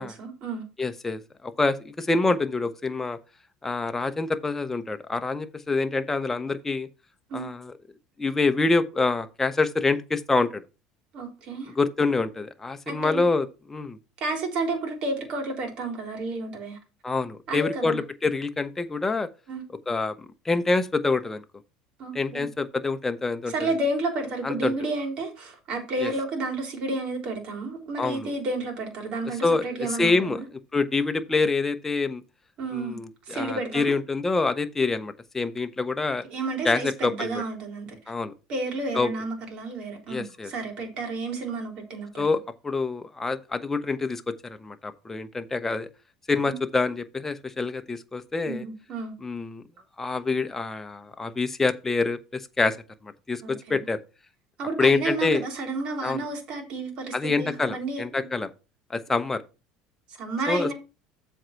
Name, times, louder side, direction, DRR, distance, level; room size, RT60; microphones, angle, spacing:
voice 1, 0.0-0.6 7.3-7.5 11.1-11.7 12.9-13.2 14.2-16.8 17.5-18.0 19.5-19.6 22.0-22.5 23.5-30.4 32.6-33.0 33.3-33.9 36.3-37.9 38.5-42.2 46.5-46.6 48.5-49.1 53.4-53.8 54.6-58.3 60.2-60.7, right 2 dB, 55° right, 3.6 m, -31 dB
voice 2, 0.8-3.2 3.6-6.9 7.3-7.7 8.2-10.6 11.8-14.0 17.0-19.3 19.9-21.4 22.1-23.7 24.4-24.7 26.0-26.1 28.0-28.3 29.4-30.4 30.7-32.2 32.7-36.2 36.6-37.4 38.1-38.3 38.9-39.1 40.1-40.5 42.2-45.9 46.3-48.6 49.2-49.6 50.0-52.8 53.0-54.0 54.8-55.4 56.0-56.2 57.1-58.5 58.9-59.4 60.5-60.7, left 3 dB, 15° left, 0.9 m, -26 dB
7.7 x 4.5 x 5.8 m
supercardioid pair, 100°, 2 cm